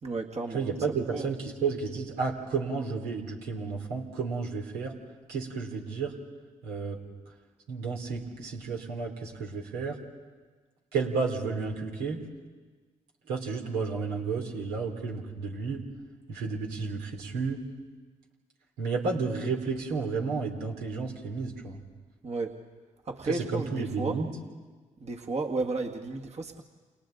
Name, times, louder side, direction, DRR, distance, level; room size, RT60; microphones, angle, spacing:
voice 1, 0.0-0.7 1.1-1.3 22.2-22.6 23.1-24.2 25.0-26.6, right 3 dB, 45° right, 2 dB, 1.9 m, -33 dB
voice 2, 0.5-4.9 5.3-6.1 6.6-7.0 7.7-10.0 10.9-12.2 13.3-15.8 16.3-17.6 18.8-21.8 23.3-24.3, right 4 dB, 85° right, 1 dB, 3.1 m, -32 dB
29.0 x 28.5 x 3.9 m, 1.4 s
hypercardioid pair, 45°, 16 cm